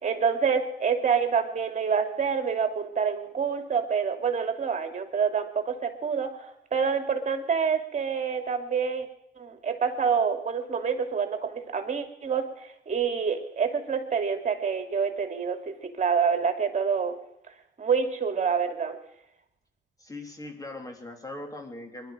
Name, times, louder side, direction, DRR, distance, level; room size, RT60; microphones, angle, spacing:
voice 1, 0.0-9.1 9.4-17.2 17.8-19.0, right 6 dB, 35° right, 6 dB, 2.8 m, -27 dB
voice 2, 20.0-22.1, left 2 dB, 15° left, 4 dB, 3.4 m, -40 dB
22.0 x 12.0 x 5.1 m, 0.80 s
cardioid pair, 90°, 20 cm